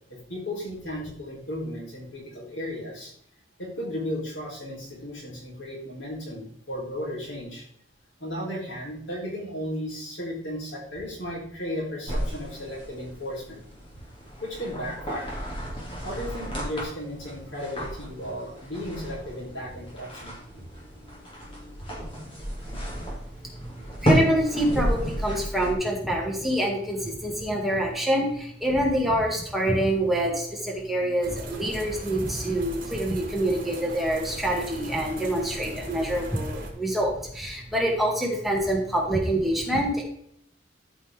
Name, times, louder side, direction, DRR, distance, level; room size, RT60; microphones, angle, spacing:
voice 1, 0.1-3.1 3.6-7.6 8.2-13.6 14.4-15.4 16.0-20.4, equal, 80° left, -3 dB, 4.0 m, -35 dB
sound 1, 12.1-25.7, equal, 30° left, 2.8 m, -32 dB
voice 2, 24.0-40.0, right 1 dB, ahead, -3 dB, 2.1 m, -26 dB
sound 2, 31.2-36.7, right 2 dB, 50° right, 2.2 m, -40 dB
13.0 x 5.5 x 3.7 m, 0.68 s
head